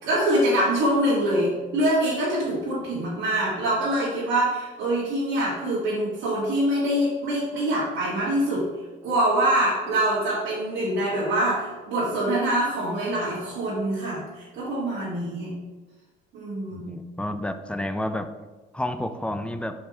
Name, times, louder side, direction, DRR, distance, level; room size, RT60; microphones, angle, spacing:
voice 1, 0.0-8.7 9.0-15.5 16.3-16.9, right 1 dB, 85° right, -10 dB, 1.9 m, -24 dB
voice 2, 16.7-18.3 18.7-19.7, left 1 dB, 5° left, 9 dB, 0.4 m, -30 dB
5.2 x 4.8 x 3.8 m, 1.2 s
cardioid pair, 90°, 20 cm